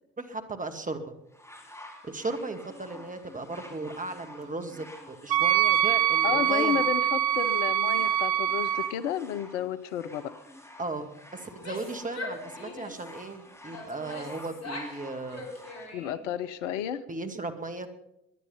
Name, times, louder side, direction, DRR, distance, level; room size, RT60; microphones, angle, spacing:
voice 1, 0.2-1.1 2.0-6.8 10.8-15.4 17.1-17.9, right 3 dB, 20° right, 7 dB, 2.1 m, -36 dB
sound 1, 1.3-15.9 16.8-16.9, left 1 dB, 5° left, 4.4 m, -49 dB
Wind instrument woodwind instrument, 5.3-8.9, right 11 dB, 60° right, 1.0 m, -24 dB
voice 2, 6.2-10.3 15.9-17.0, left 9 dB, 75° left, 15 dB, 0.9 m, -31 dB
Female speech woman speaking / Yell, 11.5-13.1 13.7-15.0 15.3-16.3, left 2 dB, 45° left, 4.6 m, -41 dB
19.5 x 11.0 x 5.7 m, 0.87 s
hypercardioid pair, 60°, 37 cm